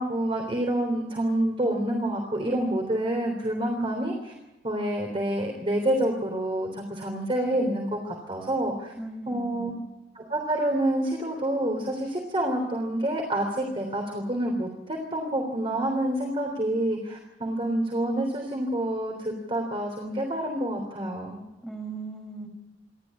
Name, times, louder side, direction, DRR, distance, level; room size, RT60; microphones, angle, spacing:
voice 1, 0.0-4.3 4.6-8.9 9.3-9.7 10.2-21.4, right 1 dB, 30° right, 1 dB, 3.5 m, -28 dB
voice 2, 9.0-9.8 21.6-22.5, right 3 dB, ahead, 2 dB, 5.5 m, -38 dB
28.0 x 13.0 x 8.6 m, 1.0 s
head